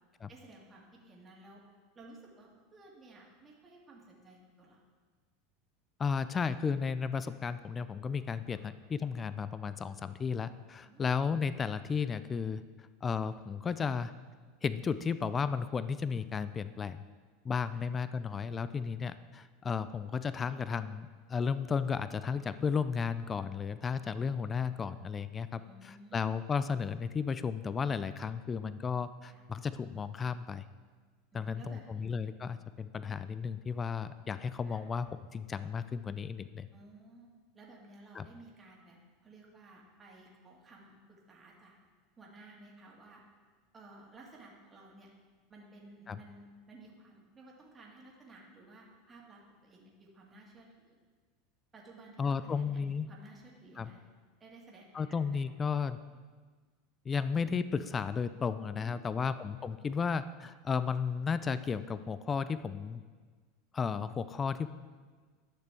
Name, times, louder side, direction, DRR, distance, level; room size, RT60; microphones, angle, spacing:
voice 1, 0.3-1.6 1.9-4.8 8.5-8.7 10.9-11.1 17.7-17.8 25.5-26.4 29.2-29.4 31.3-32.0 34.7-34.8 36.7-37.3 37.5-39.0 39.2-41.7 42.2-43.2 43.7-45.1 45.5-51.0 51.7-52.8 53.1-54.0 54.4-55.0 55.5-55.6 58.7-59.3 60.0-60.1, right 2 dB, 25° right, -2 dB, 1.9 m, -55 dB
voice 2, 6.0-12.6 13.0-14.1 14.6-17.0 17.4-30.6 31.3-35.1 35.3-36.7 38.1-38.3 46.1-46.2 52.2-53.1 53.8-53.9 54.9-56.0 57.1-63.0 63.7-64.7, left 6 dB, 25° left, 13 dB, 0.3 m, -34 dB
11.5 x 6.6 x 3.5 m, 1.5 s
supercardioid pair, 115°, 0 cm